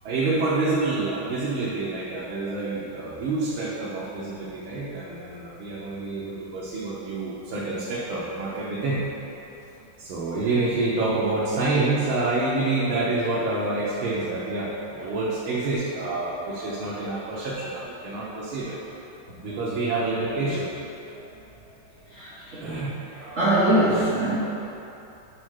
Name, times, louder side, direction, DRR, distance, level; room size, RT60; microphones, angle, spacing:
voice 1, 0.0-9.1 10.0-18.8 19.4-20.7 22.6-23.0, right 2 dB, 80° right, -7 dB, 1.8 m, -27 dB
voice 2, 22.1-22.8 23.2-24.4, right 1 dB, 45° right, -10 dB, 1.2 m, -23 dB
6.2 x 4.2 x 6.5 m, 2.9 s
omnidirectional pair, 2.2 m